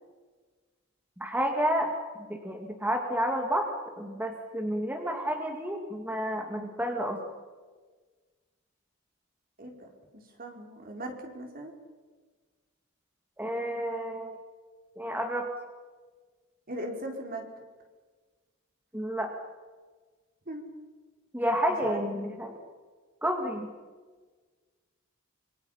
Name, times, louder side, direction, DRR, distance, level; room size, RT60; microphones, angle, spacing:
voice 1, 1.2-1.9 2.3-7.2 13.4-14.4 15.0-15.5 18.9-19.3 21.3-22.5 23.2-23.7, equal, 10° right, 3 dB, 2.2 m, -30 dB
voice 2, 9.6-11.7 16.7-17.4 20.5-20.6 21.8-22.0, right 1 dB, 45° right, 3 dB, 4.6 m, -38 dB
27.0 x 26.0 x 5.7 m, 1.4 s
head